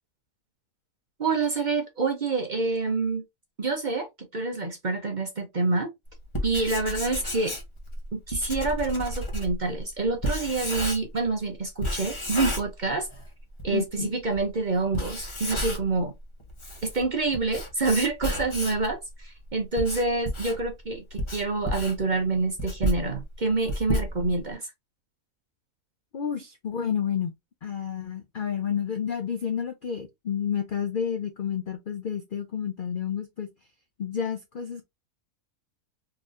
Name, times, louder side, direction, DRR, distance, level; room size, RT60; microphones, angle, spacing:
voice 1, 1.2-3.2 3.6-5.9 6.4-7.5 8.1-13.1 13.6-16.1 16.8-24.7, right 3 dB, 40° right, 0.7 m, -27 dB
Writing, 6.2-11.3 11.8-13.3 13.6-13.7 14.3-14.4 14.8-16.0 16.4-18.9 19.5-24.5, equal, 25° left, 0.9 m, -32 dB
voice 2, 13.7-14.1 26.1-27.3 27.6-33.5 34.0-34.8, left 8 dB, 65° left, 0.5 m, -30 dB
3.9 x 2.9 x 2.5 m
omnidirectional pair, 1.6 m